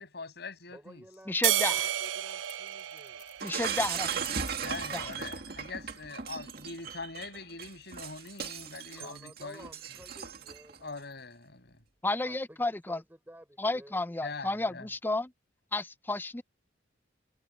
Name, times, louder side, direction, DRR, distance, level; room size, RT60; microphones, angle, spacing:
voice 1, 0.0-1.0 4.6-9.7 10.8-11.8 14.2-14.9, left 3 dB, 60° left, 6.4 m, -43 dB
voice 2, 0.7-3.3 8.9-11.1 12.2-14.0, right 1 dB, 10° right, 5.2 m, -53 dB
sound 1, 1.1-5.5 7.6-8.8, left 12 dB, 45° left, 5.9 m, -53 dB
voice 3, 1.3-1.9 3.4-4.4 4.9-5.1 12.0-13.0 13.6-15.3 15.7-16.4, left 2 dB, 10° left, 0.5 m, -32 dB
sound 2, 1.4-4.0, right 13 dB, 90° right, 0.4 m, -31 dB
Shatter, 3.4-10.8, right 7 dB, 55° right, 2.1 m, -37 dB
head